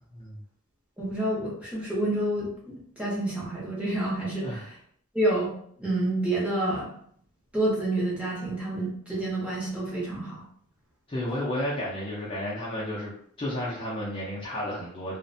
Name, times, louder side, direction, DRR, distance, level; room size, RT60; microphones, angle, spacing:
voice 1, 1.0-4.6 5.1-5.5 5.8-6.9 7.5-10.4, right 1 dB, 5° right, -6 dB, 0.8 m, -28 dB
voice 2, 11.1-13.1 13.4-15.2, left 1 dB, 25° left, -6 dB, 0.5 m, -32 dB
2.5 x 2.1 x 2.6 m, 0.62 s
head